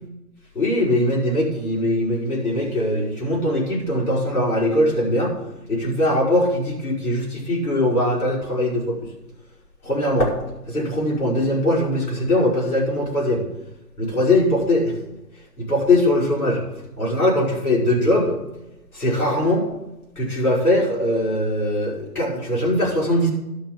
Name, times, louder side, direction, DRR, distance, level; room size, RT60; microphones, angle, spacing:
voice 1, 0.5-5.4 5.7-9.0 9.8-10.3 10.7-13.5 14.0-14.9 15.6-16.6 17.0-18.4 18.9-19.6 20.2-23.3, left 1 dB, 60° left, -3 dB, 5.1 m, -21 dB
12.0 x 5.9 x 7.2 m, 0.95 s
figure-of-eight pair, 165°, 49 cm